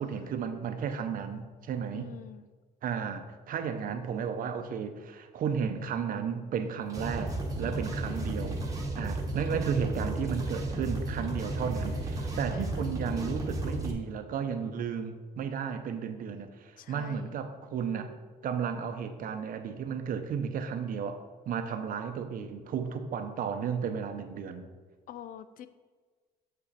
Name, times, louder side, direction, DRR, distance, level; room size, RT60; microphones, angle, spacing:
voice 1, 0.0-2.1 2.8-8.6 9.0-18.1 18.4-24.7, right 7 dB, 55° right, 7 dB, 0.8 m, -34 dB
voice 2, 1.9-2.5 8.2-8.7 12.5-12.9 16.8-17.4 25.1-25.7, left 10 dB, 55° left, 13 dB, 0.5 m, -46 dB
sound 1, 6.9-13.9, right 1 dB, 20° right, 1.2 m, -33 dB
7.2 x 5.8 x 4.1 m, 1.4 s
cardioid pair, 110°, 17 cm